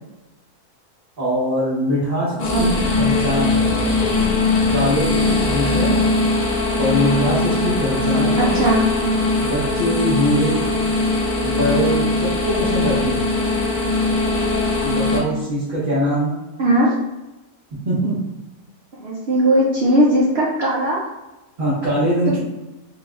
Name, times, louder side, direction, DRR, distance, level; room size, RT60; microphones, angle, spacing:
voice 1, 1.2-2.7 3.0-3.7 4.7-5.9 6.8-8.5 9.4-10.7 11.4-13.3 14.8-16.4 17.8-18.2 21.6-22.4, equal, 35° right, -10 dB, 1.1 m, -22 dB
sound 1, 2.4-15.2, left 3 dB, 70° left, 0.3 m, -20 dB
voice 2, 8.4-8.9 16.6-16.9 19.0-21.0, right 1 dB, 65° right, -4 dB, 0.6 m, -18 dB
3.6 x 3.3 x 2.4 m, 1.0 s
omnidirectional pair, 1.6 m